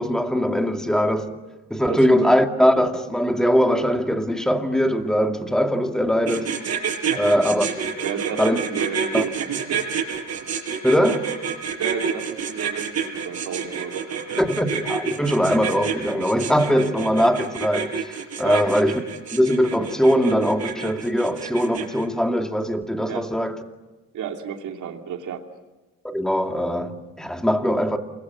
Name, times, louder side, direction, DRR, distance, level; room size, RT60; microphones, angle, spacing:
voice 1, 0.0-1.4 1.7-6.5 7.2-7.7 8.4-8.6 9.1-9.2 10.8-11.3 14.4-19.0 19.3-23.6 26.0-28.0, equal, ahead, 2.4 m, -21 dB
voice 2, 1.8-2.3 7.1-7.2 8.0-9.9 10.4-10.5 11.8-14.4 18.4-18.7 23.1-23.3 24.1-25.5, right 8 dB, 80° right, 3.0 m, -32 dB
sound 1, 6.3-22.0, right 7 dB, 55° right, 5.8 m, -28 dB
28.0 x 22.0 x 9.6 m
cardioid pair, 90°, 30 cm